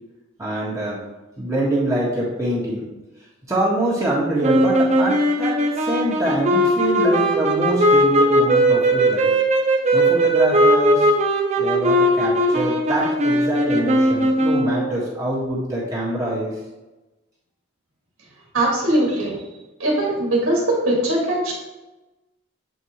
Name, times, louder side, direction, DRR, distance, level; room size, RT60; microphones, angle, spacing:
voice 1, 0.4-1.0 1.4-2.9 3.5-9.3 9.9-11.1 11.6-16.5, right 1 dB, 15° right, -6 dB, 1.6 m, -24 dB
sound 1, 4.4-14.9, right 1 dB, 35° right, 0.7 m, -18 dB
voice 2, 18.5-19.4 19.8-21.5, right 1 dB, 90° right, -3 dB, 1.9 m, -20 dB
8.0 x 4.4 x 3.0 m, 1.1 s
head